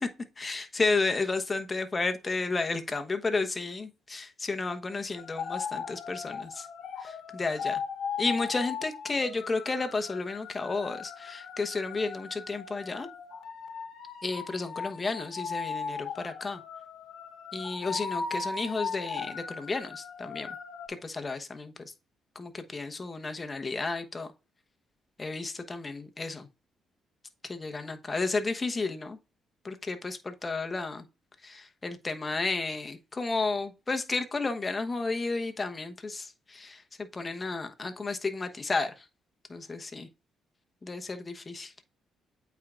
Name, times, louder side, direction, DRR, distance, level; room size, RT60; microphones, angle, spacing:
voice 1, 0.4-6.7 7.0-7.8 8.2-13.1 14.2-16.6 17.5-20.5 20.9-21.7 22.3-24.3 25.2-26.5 27.4-29.2 29.6-31.0 31.4-38.9 39.5-40.1 40.8-41.7, left 3 dB, 25° left, 1.1 m, -32 dB
sound 1, 5.2-20.9, left 5 dB, 70° left, 1.2 m, -38 dB
8.5 x 4.6 x 2.4 m
cardioid pair, 90°, 0 cm